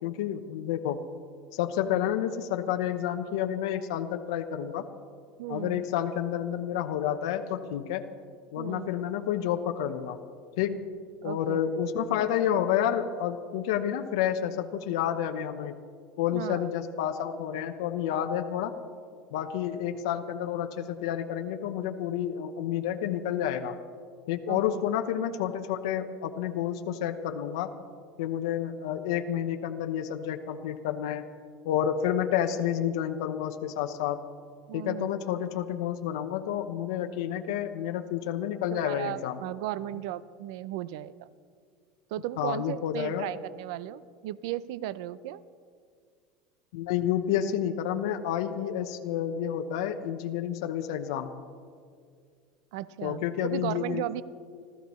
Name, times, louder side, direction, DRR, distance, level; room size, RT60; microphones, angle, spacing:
voice 1, 0.0-1.0 1.5-4.9 5.5-8.0 8.5-10.2 10.6-10.9 11.2-15.7 16.2-18.7 19.3-23.8 24.3-27.7 28.2-31.2 31.6-34.2 34.7-39.4 42.4-43.3 46.7-51.3 53.0-54.2, left 10 dB, 80° left, 6 dB, 0.9 m, -30 dB
voice 2, 5.4-5.8 8.6-8.9 11.2-11.6 16.3-16.7 24.5-24.8 34.7-35.1 38.7-41.3 42.1-45.4 52.7-54.2, right 14 dB, 65° right, 17 dB, 0.4 m, -36 dB
29.5 x 13.5 x 3.1 m, 2.1 s
cardioid pair, 170°, 3 cm